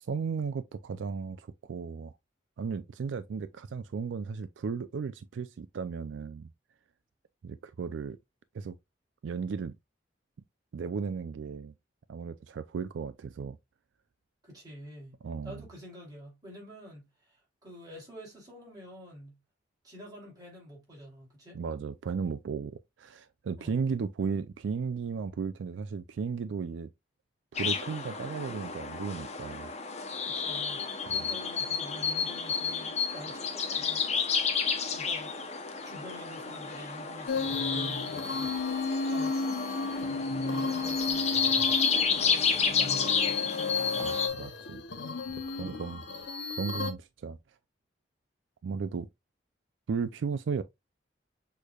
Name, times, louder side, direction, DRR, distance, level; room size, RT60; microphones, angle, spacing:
voice 1, 0.0-2.1 2.6-6.5 7.4-8.2 8.5-8.7 9.2-9.7 10.7-11.7 12.1-13.6 15.2-15.6 21.5-26.9 27.5-29.7 31.1-31.2 44.0-44.8 45.3-46.0 46.6-47.4 48.6-49.1 49.9-50.6, right 5 dB, 75° right, 0.4 m, -35 dB
voice 2, 14.4-15.2 15.4-19.4 19.8-21.6 23.6-23.8 30.2-41.3 41.7-43.6 45.5-45.8, equal, 20° right, 2.7 m, -48 dB
sound 1, 27.6-44.3, left 6 dB, 35° left, 0.7 m, -31 dB
sound 2, 37.3-46.9, left 3 dB, 70° left, 0.8 m, -33 dB
6.4 x 3.3 x 2.3 m
head